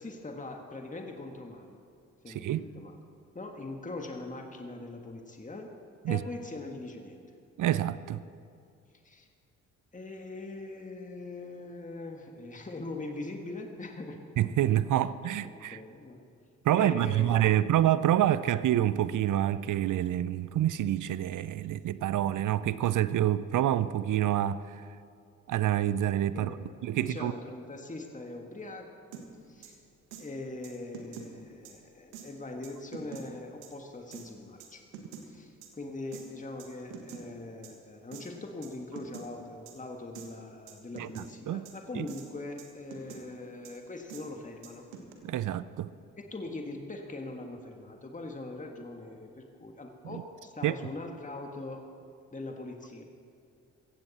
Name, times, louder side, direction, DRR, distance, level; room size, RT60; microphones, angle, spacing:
voice 1, 0.0-1.8 2.2-3.0 3.3-5.8 6.1-7.3 9.0-9.3 9.9-14.2 14.9-15.0 15.4-16.2 16.7-17.7 26.3-29.0 29.5-29.8 30.2-34.8 35.2-44.9 46.1-51.8 52.3-53.0, left 2 dB, 20° left, 1.8 m, -42 dB
voice 2, 2.3-2.6 6.1-6.2 7.6-8.2 14.4-15.8 16.6-24.6 25.5-26.6 26.8-27.3 41.0-41.1 41.5-41.6 42.0-42.1 45.2-45.9 50.6-50.7, right 12 dB, 55° right, 0.6 m, -27 dB
sound 1, 29.1-29.2 29.6-29.7 30.1-30.2 30.6-31.3 31.7-31.8 32.1-32.3 32.6-33.2 33.6-33.7 34.1-34.2 34.6-35.3 35.6-35.7 36.1-36.2 36.6-37.2 37.6-37.7 38.1-38.2 38.6-38.7 39.0-39.3 39.7-39.8 40.2-40.3 40.7-41.3 41.7-41.8 42.1-42.3 42.6-43.2 43.6-43.7 44.1-44.2 44.6-45.1, right 7 dB, 85° right, 1.6 m, -45 dB
16.5 x 15.5 x 4.3 m
hypercardioid pair, 50°, 37 cm